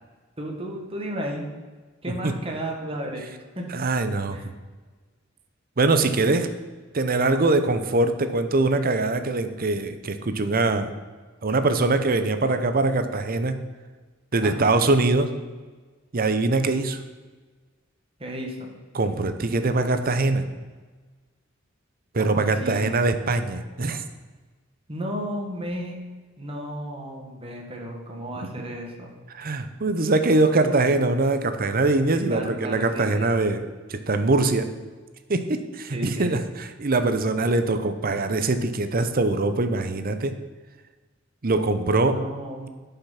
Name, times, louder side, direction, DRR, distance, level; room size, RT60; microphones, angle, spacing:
voice 1, 0.4-1.5 2.0-3.2 3.5-3.7 4.3-4.4 14.4-14.7 18.2-18.7 22.2-23.0 24.9-26.0 26.4-29.1 32.1-33.3 35.9-36.3 42.0-42.7, equal, 30° right, 0 dB, 1.6 m, -33 dB
voice 2, 3.7-4.5 5.8-6.5 6.9-10.9 11.4-13.6 14.3-15.3 16.1-17.0 18.9-20.5 22.1-24.0 29.3-34.7 35.3-40.3 41.4-42.2, right 2 dB, 45° right, 9 dB, 0.7 m, -23 dB
10.5 x 5.8 x 5.8 m, 1.4 s
head